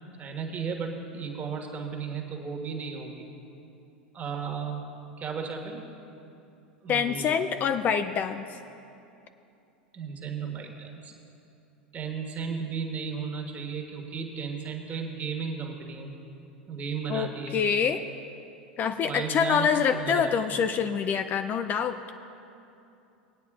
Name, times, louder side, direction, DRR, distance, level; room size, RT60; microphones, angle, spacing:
voice 1, 0.2-3.3 4.1-4.8 5.2-5.8 6.8-7.4 9.9-11.1 11.9-16.1 16.7-17.6 19.0-20.4, right 5 dB, 30° right, 1 dB, 1.5 m, -34 dB
voice 2, 6.9-8.5 17.1-18.1 18.8-22.0, left 7 dB, 35° left, 9 dB, 0.4 m, -26 dB
19.0 x 9.1 x 2.4 m, 2.8 s
figure-of-eight pair, 85°, 6 cm